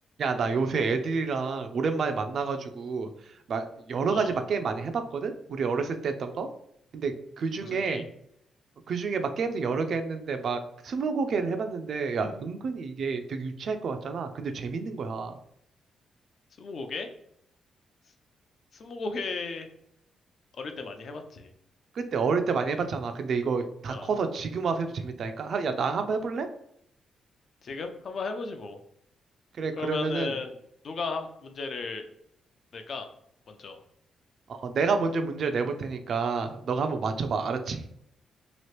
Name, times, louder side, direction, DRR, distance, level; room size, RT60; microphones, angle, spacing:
voice 1, 0.2-3.1 3.5-6.5 6.9-8.1 8.9-15.4 21.9-26.5 29.6-30.3 34.5-37.8, right 4 dB, 60° right, 7 dB, 0.4 m, -29 dB
voice 2, 7.6-8.1 16.6-17.1 18.7-19.7 20.6-21.5 23.9-24.1 27.6-28.8 29.8-30.6 30.8-32.1 32.7-33.1 33.5-33.8, left 4 dB, 55° left, 6 dB, 0.5 m, -35 dB
2.9 x 2.4 x 3.1 m, 0.72 s
cardioid pair, 110°, 0 cm